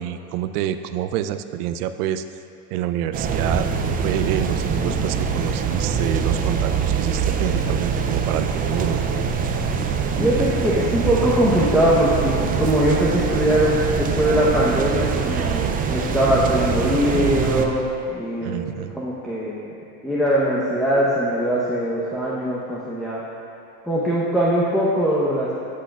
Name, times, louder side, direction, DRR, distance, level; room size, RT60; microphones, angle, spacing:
voice 1, 0.0-2.2 2.7-9.0 18.4-19.0, right 11 dB, 75° right, 10 dB, 0.6 m, -27 dB
sound 1, 3.1-17.7, right 6 dB, 20° right, 0.3 m, -23 dB
voice 2, 10.2-18.7 18.9-19.7 20.0-23.2 23.8-25.6, equal, ahead, -7 dB, 0.8 m, -21 dB
14.0 x 6.4 x 2.4 m, 2.5 s
supercardioid pair, 110°, 46 cm